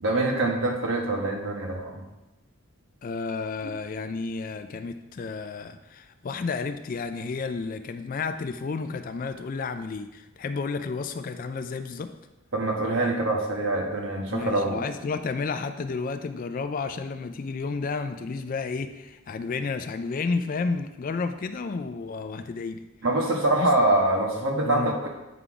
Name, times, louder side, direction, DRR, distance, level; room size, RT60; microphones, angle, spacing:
voice 1, 0.0-2.0 12.5-14.9 23.0-25.1, right 2 dB, 60° right, 0 dB, 1.2 m, -25 dB
voice 2, 3.0-12.1 14.3-22.8 23.6-23.7 24.6-25.0, left 4 dB, 40° left, 9 dB, 0.3 m, -31 dB
8.2 x 3.8 x 4.8 m, 1.0 s
head